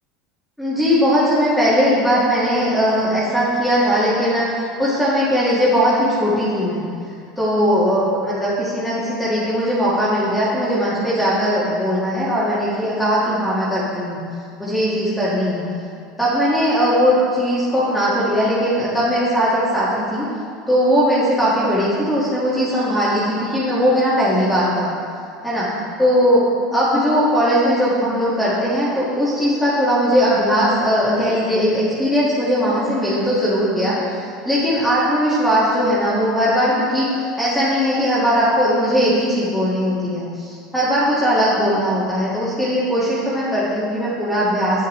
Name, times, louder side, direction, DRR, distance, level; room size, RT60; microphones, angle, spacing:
voice 1, 0.6-6.8 7.4-14.2 14.6-15.6 16.2-20.2 20.7-24.9 25.4-25.7 26.0-26.4 26.7-44.9, equal, 5° left, -10 dB, 2.0 m, -19 dB
8.8 x 6.6 x 3.3 m, 2.3 s
hypercardioid pair, 85°, 0 cm